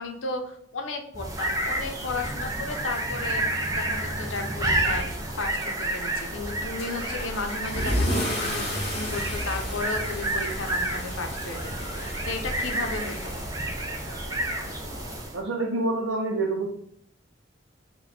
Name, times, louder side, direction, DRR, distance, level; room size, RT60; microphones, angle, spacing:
voice 1, 0.0-3.5 3.7-5.1 5.3-13.3, left 3 dB, 85° left, 4 dB, 0.7 m, -34 dB
sound 1, 1.1-15.4, right 1 dB, 20° right, 0.4 m, -30 dB
Car / Engine starting / Accelerating revving vroom, 6.8-14.1, equal, 35° left, 1.4 m, -33 dB
Rain, 8.6-15.2, equal, 15° left, 0.7 m, -41 dB
voice 2, 15.3-16.7, right 2 dB, 85° right, -1 dB, 0.6 m, -27 dB
4.1 x 2.2 x 4.1 m, 0.68 s
head